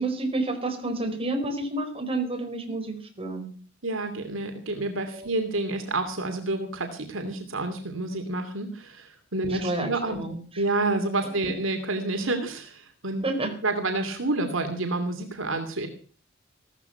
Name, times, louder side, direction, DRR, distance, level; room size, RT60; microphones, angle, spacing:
voice 1, 0.0-3.5 5.1-5.3 9.5-10.4 13.2-13.5, right 2 dB, 30° right, 5 dB, 4.7 m, -29 dB
voice 2, 3.8-10.2 10.6-13.3 13.6-15.9, right 2 dB, 70° right, 6 dB, 2.7 m, -29 dB
16.0 x 14.0 x 5.8 m, 0.41 s
head